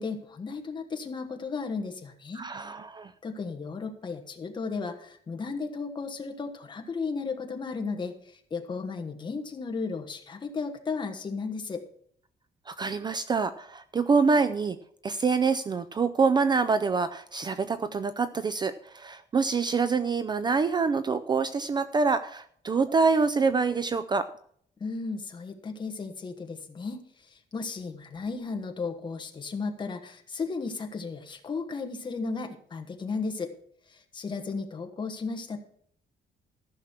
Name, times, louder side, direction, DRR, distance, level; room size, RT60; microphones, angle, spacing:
voice 1, 0.0-2.5 3.2-8.1 8.5-11.8 24.8-27.0 27.3-33.5 33.9-35.6, left 4 dB, 25° left, 5 dB, 1.3 m, -34 dB
voice 2, 2.4-3.1 12.7-14.8 15.0-24.3, right 4 dB, 25° right, 12 dB, 0.4 m, -26 dB
14.0 x 6.2 x 5.9 m, 0.63 s
cardioid pair, 175°, 17 cm